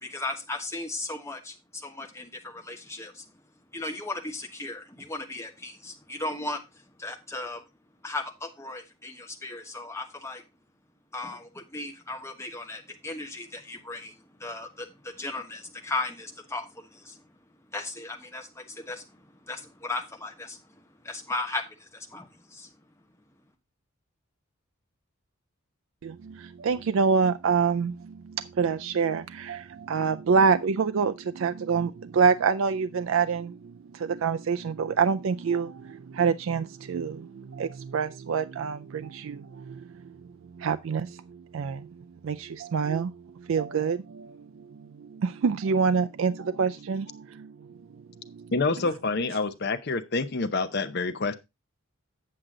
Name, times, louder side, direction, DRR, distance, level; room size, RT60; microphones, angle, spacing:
voice 1, 0.0-3.4 3.7-7.6 8.0-10.4 11.1-22.8, left 2 dB, 15° left, 1.2 m, -37 dB
voice 2, 26.0-39.8 40.6-41.2 41.5-41.9 42.2-43.1 43.5-44.4 45.0-47.5 48.3-48.5, right 5 dB, 65° right, 0.4 m, -26 dB
voice 3, 48.5-51.3, left 3 dB, 50° left, 0.7 m, -27 dB
7.8 x 7.6 x 3.7 m
head